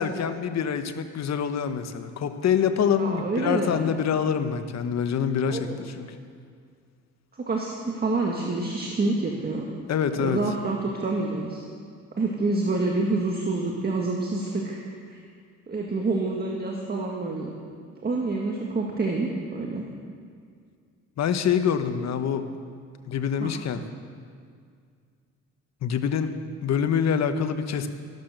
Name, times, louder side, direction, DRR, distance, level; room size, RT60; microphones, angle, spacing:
voice 1, 0.0-6.0 9.9-10.4 21.2-22.5 23.1-23.8 25.8-26.3 26.6-27.9, left 7 dB, 60° left, 9 dB, 1.1 m, -25 dB
voice 2, 3.0-3.8 5.5-5.8 7.3-9.7 10.2-11.6 12.2-14.8 15.1-15.2 15.7-17.5 18.0-19.9 23.4-23.5, right 3 dB, 30° right, 0 dB, 1.8 m, -27 dB
13.5 x 12.0 x 6.7 m, 2.1 s
cardioid pair, 90°, 30 cm